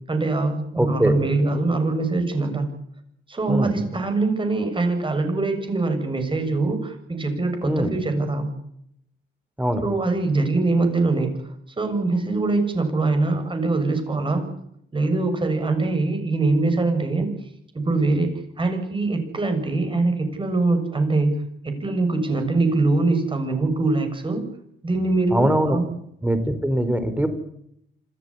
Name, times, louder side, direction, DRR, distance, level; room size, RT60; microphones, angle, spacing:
voice 1, 0.1-2.7 3.3-8.5 9.8-14.5 14.9-17.3 17.7-24.4 24.8-25.9, right 3 dB, 25° right, 7 dB, 7.1 m, -23 dB
voice 2, 0.7-1.1 3.5-3.7 7.6-7.9 9.6-9.8 25.3-25.8 26.2-27.3, right 1 dB, 10° right, 9 dB, 4.7 m, -22 dB
26.5 x 14.5 x 10.0 m, 0.73 s
cardioid pair, 90°, 20 cm